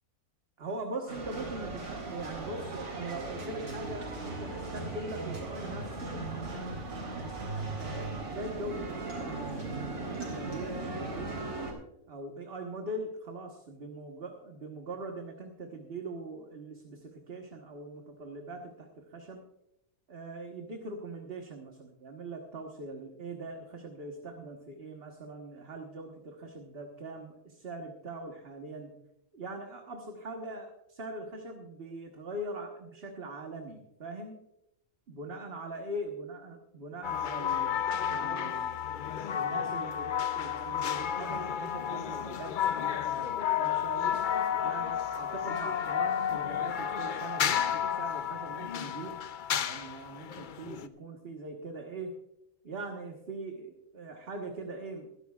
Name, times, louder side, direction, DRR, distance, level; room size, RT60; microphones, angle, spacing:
voice 1, 0.6-11.5 12.1-19.4 20.1-28.9 29.3-34.4 35.1-37.8 38.1-38.8 39.3-44.2 44.6-49.2 49.6-52.1 52.6-55.1, right 2 dB, 45° right, 2 dB, 1.5 m, -42 dB
sound 1, 1.1-11.7, right 3 dB, 90° right, 4.1 m, -38 dB
sound 2, 37.0-50.9, left 9 dB, 60° left, 0.5 m, -32 dB
23.0 x 11.5 x 2.4 m, 0.84 s
omnidirectional pair, 1.5 m